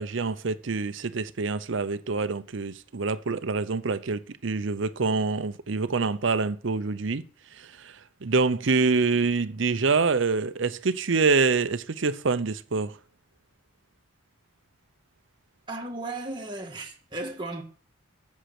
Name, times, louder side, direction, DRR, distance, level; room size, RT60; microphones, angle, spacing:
voice 1, 0.0-7.2 7.5-13.0, right 4 dB, 65° right, 0.7 m, -26 dB
voice 2, 15.7-17.6, right 2 dB, 20° right, 1.6 m, -35 dB
8.2 x 7.4 x 5.9 m
head